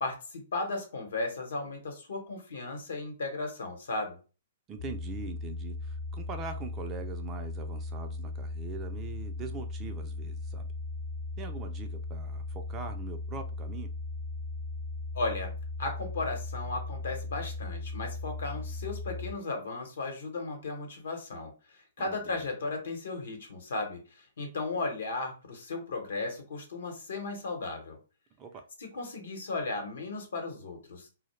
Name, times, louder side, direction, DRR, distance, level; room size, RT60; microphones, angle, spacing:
voice 1, 0.0-4.2 15.1-15.5 15.8-28.0 28.8-31.1, left 3 dB, 75° left, 3 dB, 0.9 m, -35 dB
voice 2, 4.7-10.7 11.4-13.9 22.0-22.5 28.4-28.6, right 5 dB, 25° right, 6 dB, 0.4 m, -42 dB
sound 1, 4.8-19.3, left 3 dB, 60° left, 0.5 m, -37 dB
2.2 x 2.0 x 3.0 m, 0.34 s
hypercardioid pair, 135°, 0 cm